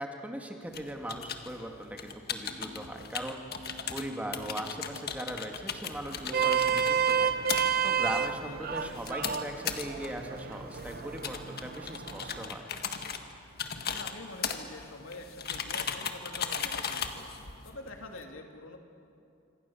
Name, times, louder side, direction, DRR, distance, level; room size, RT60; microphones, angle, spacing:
voice 1, 0.0-3.4 3.9-7.3 7.8-12.7, right 1 dB, 5° right, 3 dB, 1.9 m, -39 dB
sound 1, 0.7-18.2, left 6 dB, 50° left, 1.6 m, -38 dB
sound 2, 2.4-7.4, equal, 30° right, 1.4 m, -51 dB
Vehicle horn car horn honking, 6.1-12.5, right 7 dB, 50° right, 1.0 m, -31 dB
voice 2, 8.4-9.0 13.7-18.8, left 2 dB, 85° left, 3 dB, 2.7 m, -46 dB
26.0 x 26.0 x 7.1 m, 2.7 s
head